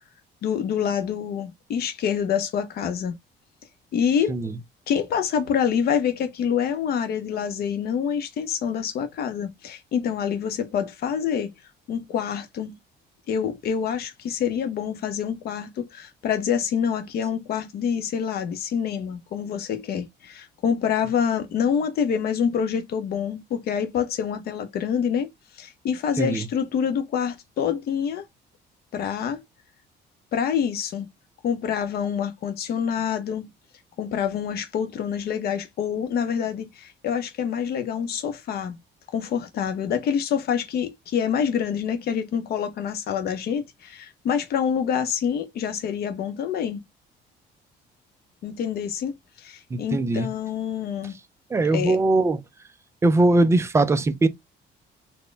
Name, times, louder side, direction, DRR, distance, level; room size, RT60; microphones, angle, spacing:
voice 1, 0.4-3.2 3.9-4.4 4.9-11.5 11.9-12.8 13.3-25.3 25.6-28.2 28.9-29.4 30.3-31.1 31.4-33.5 34.0-38.8 39.1-46.8 48.4-51.1 51.7-52.0, left 7 dB, 55° left, 0.8 m, -26 dB
voice 2, 49.7-50.3 51.5-52.4 53.0-54.3, right 2 dB, 15° right, 0.3 m, -20 dB
4.2 x 2.1 x 3.3 m
cardioid pair, 155°, 19 cm